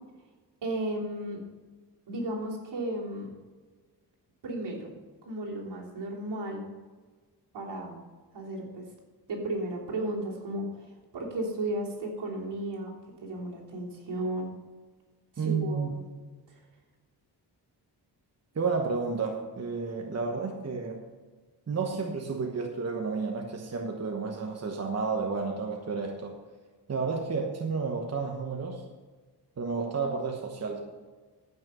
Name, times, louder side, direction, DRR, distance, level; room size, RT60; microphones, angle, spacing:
voice 1, 0.6-1.4 2.1-3.3 4.4-4.9 5.2-6.6 7.5-8.0 8.3-8.9 9.3-10.7 11.1-12.9 13.2-14.5 15.3-16.0 16.5-16.6, right 1 dB, 75° right, -3 dB, 3.4 m, -34 dB
voice 2, 15.4-16.0 18.5-21.1 21.7-26.4 26.9-28.8 29.6-30.8, right 4 dB, 40° right, 2 dB, 1.2 m, -31 dB
15.0 x 6.1 x 5.6 m, 1.4 s
wide cardioid pair, 110°, 41 cm